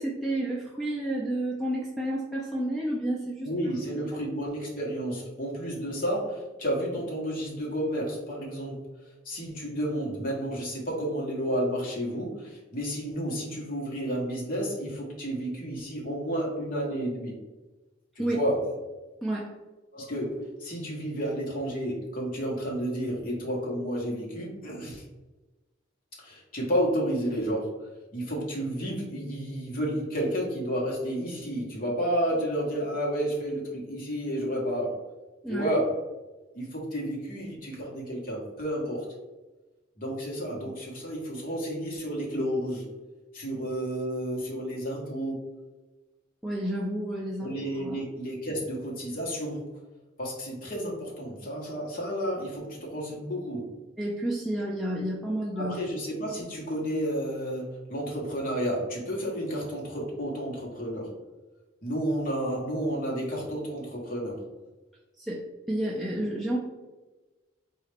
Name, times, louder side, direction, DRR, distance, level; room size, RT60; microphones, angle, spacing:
voice 1, 0.0-3.5 18.2-18.4 19.2-19.5 35.4-35.7 46.4-47.5 47.8-48.0 54.0-55.7 65.2-66.6, right 1 dB, ahead, -3 dB, 0.3 m, -30 dB
voice 2, 3.4-8.9 9.2-17.3 18.1-18.6 19.9-25.0 26.2-34.9 35.5-36.0 36.5-39.0 40.0-42.9 43.3-45.4 47.4-49.7 50.2-53.7 55.6-61.1 61.8-64.4, equal, 45° left, -3 dB, 1.0 m, -31 dB
4.1 x 2.4 x 3.3 m, 1.2 s
head